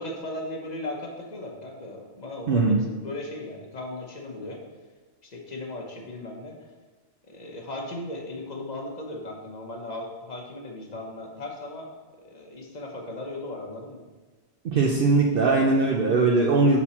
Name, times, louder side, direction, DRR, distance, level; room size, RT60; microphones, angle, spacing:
voice 1, 0.0-4.6 5.2-6.5 7.3-11.9 12.2-14.0, left 1 dB, 40° left, 0 dB, 0.9 m, -37 dB
voice 2, 2.5-2.8 14.6-16.8, right 3 dB, 60° right, -1 dB, 0.7 m, -20 dB
6.0 x 4.2 x 4.2 m, 1.3 s
omnidirectional pair, 1.2 m